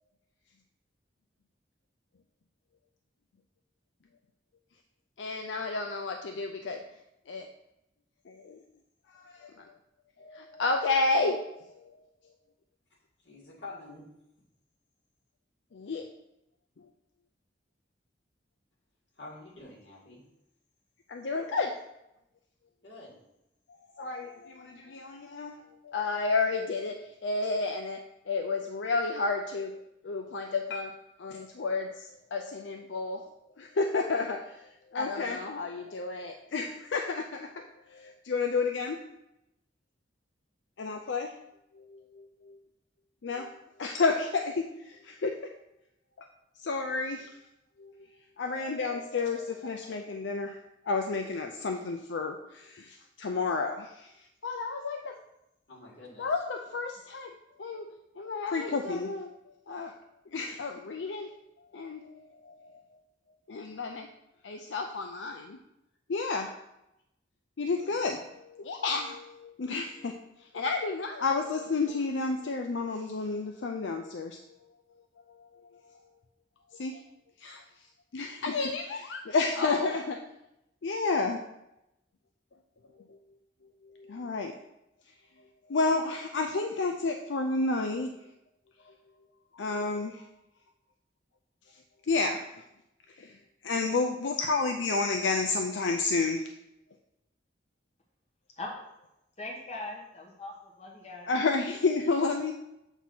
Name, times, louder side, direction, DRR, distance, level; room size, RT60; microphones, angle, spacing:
voice 1, 5.2-6.8 7.3-7.5 8.3-8.6 9.1-9.8 10.2-11.9 15.7-16.1 16.8-16.9 21.1-21.8 24.0-29.8 30.0-30.9 31.2-33.3 33.6-39.0 40.8-41.3 41.7-42.6 43.2-43.5 43.8-45.5 46.2-46.3 46.6-47.4 47.8-47.9 48.4-50.6 50.8-55.1 56.2-57.3 57.6-57.9 58.2-59.3 59.7-60.0 60.3-61.3 61.6-62.8 63.5-64.1 64.4-65.6 66.1-66.5 67.6-74.4 75.3-75.8 76.7-77.0 77.4-77.6 78.1-80.2 80.8-81.4 83.1-83.2 83.8-84.6 85.7-88.3 88.9-89.0 89.5-90.3 92.0-92.6 93.1-93.4 93.6-96.5 101.3-102.5, left 3 dB, 90° left, 4 dB, 0.5 m, -31 dB
voice 2, 13.2-14.0 19.2-20.2 22.8-23.2 55.7-56.3, left 2 dB, 70° left, -5 dB, 2.4 m, -47 dB
voice 3, 99.4-101.3, left 2 dB, 40° left, -1 dB, 1.0 m, -40 dB
8.0 x 2.8 x 5.9 m, 0.86 s
head